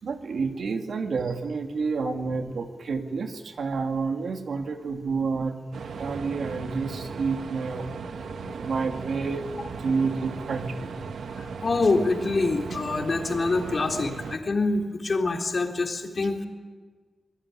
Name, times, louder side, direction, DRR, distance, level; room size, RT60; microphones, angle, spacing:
voice 1, 0.0-5.5 5.8-7.9 8.5-9.4 9.8-10.9, right 4 dB, 70° right, 5 dB, 2.4 m, -29 dB
sound 1, 5.7-14.4, right 5 dB, 90° right, 1.6 m, -37 dB
voice 2, 11.3-16.5, left 3 dB, 40° left, 3 dB, 3.6 m, -25 dB
26.0 x 21.0 x 9.8 m, 1.5 s
wide cardioid pair, 130°, 0 cm